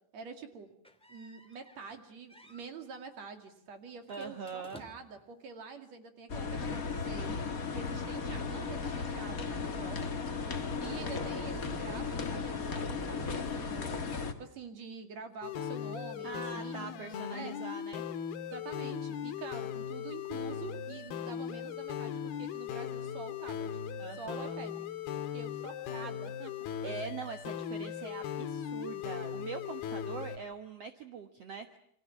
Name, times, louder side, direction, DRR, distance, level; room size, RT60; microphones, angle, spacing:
voice 1, 0.1-0.7 1.1-7.3 7.7-10.1 10.8-16.9 17.3-17.6 18.5-23.8 24.1-24.8 25.1-26.5 26.8-27.1, right 5 dB, 45° right, 7 dB, 3.1 m, -47 dB
sound 1, 0.8-2.0 2.3-2.7 4.1-5.3, equal, ahead, 1.5 m, -55 dB
voice 2, 4.1-4.8 16.2-18.0 24.0-24.6 26.8-31.8, right 5 dB, 80° right, 7 dB, 1.4 m, -43 dB
sound 2, 6.3-14.3, left 4 dB, 55° left, 0.9 m, -35 dB
sound 3, 15.4-30.4, left 8 dB, 70° left, 3.1 m, -38 dB
28.5 x 25.5 x 7.2 m, 0.67 s
omnidirectional pair, 4.8 m